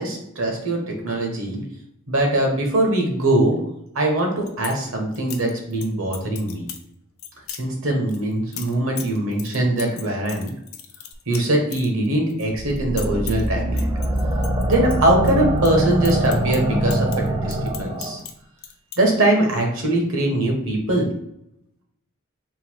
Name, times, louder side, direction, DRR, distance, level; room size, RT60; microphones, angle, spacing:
voice 1, 0.0-1.6 2.1-3.7 3.9-6.7 7.6-10.5 11.3-13.9 14.7-18.2 19.0-21.1, right 1 dB, 75° right, 1 dB, 1.1 m, -22 dB
sound 1, 4.2-4.8 5.1-5.9 6.1-6.8 7.2-7.6 8.1-12.4 12.7-13.5 13.8-15.3 15.6-18.3 18.6-19.0, left 10 dB, 80° left, 0.5 m, -37 dB
sound 2, 12.5-18.2, right 1 dB, 20° right, 0.5 m, -23 dB
3.9 x 2.2 x 4.5 m, 0.77 s
head